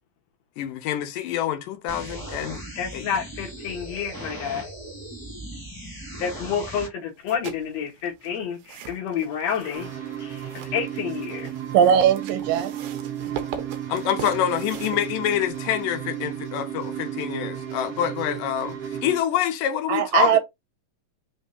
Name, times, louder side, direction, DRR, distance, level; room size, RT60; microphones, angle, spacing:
voice 1, 0.6-2.6 2.9-3.1 13.9-20.4, left 10 dB, 80° left, 2.4 m, -26 dB
sound 1, 1.9-6.9, right 1 dB, 30° left, 0.3 m, -38 dB
voice 2, 2.8-4.7 6.2-11.5, left 7 dB, 60° left, 2.3 m, -29 dB
sound 2, 7.1-15.7, right 8 dB, 70° right, 2.1 m, -41 dB
sound 3, 9.7-19.2, right 10 dB, 55° right, 1.7 m, -34 dB
voice 3, 11.7-12.8 19.9-20.4, right 8 dB, 90° right, 2.3 m, -19 dB
5.4 x 3.5 x 2.7 m
omnidirectional pair, 3.9 m